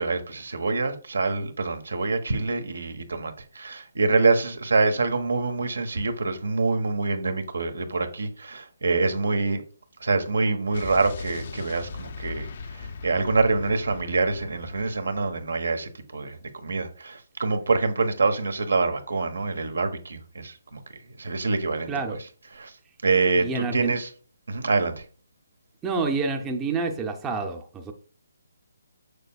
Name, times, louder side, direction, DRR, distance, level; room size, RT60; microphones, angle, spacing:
voice 1, 0.0-9.6 10.0-12.5 12.7-20.8 21.2-21.9 22.6-22.7 23.0-24.1 24.5-25.0, right 3 dB, 80° right, 1.1 m, -25 dB
Explosion, 10.7-15.5, left 4 dB, 50° left, 0.6 m, -39 dB
voice 2, 23.4-23.9 25.8-27.9, right 4 dB, 15° right, 0.6 m, -28 dB
6.6 x 6.2 x 2.3 m
hypercardioid pair, 150°, 0 cm